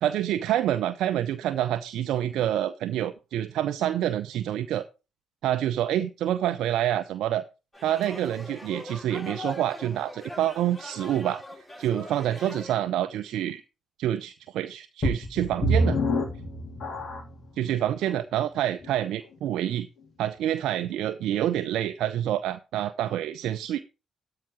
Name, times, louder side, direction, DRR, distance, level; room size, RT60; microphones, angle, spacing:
voice 1, 0.0-4.9 5.4-7.4 7.8-13.6 14.0-16.0 17.6-19.9 20.2-23.8, right 11 dB, 70° right, 10 dB, 0.5 m, -27 dB
sound 1, 7.7-12.7, left 1 dB, 20° left, 5.7 m, -41 dB
sound 2, 15.0-17.4 18.1-18.2 18.8-18.9, equal, 60° left, 3.2 m, -26 dB
12.5 x 4.8 x 4.8 m, 0.30 s
hypercardioid pair, 45°, 0 cm